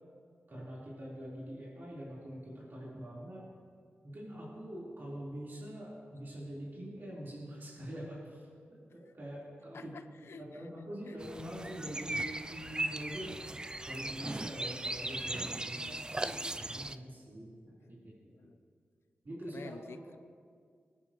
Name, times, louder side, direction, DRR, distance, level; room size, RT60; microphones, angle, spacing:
voice 1, 0.5-3.4 4.0-9.9 10.3-13.4 13.8-18.1 19.2-20.1, equal, 55° right, -7 dB, 3.9 m, -44 dB
voice 2, 9.7-10.7 11.0-11.2 18.3-18.6 19.5-20.2, left 4 dB, 75° left, 9 dB, 0.8 m, -50 dB
sound 1, 11.2-17.0, right 2 dB, 20° right, 0.4 m, -38 dB
25.0 x 10.0 x 3.1 m, 2.1 s
wide cardioid pair, 90°, 4 cm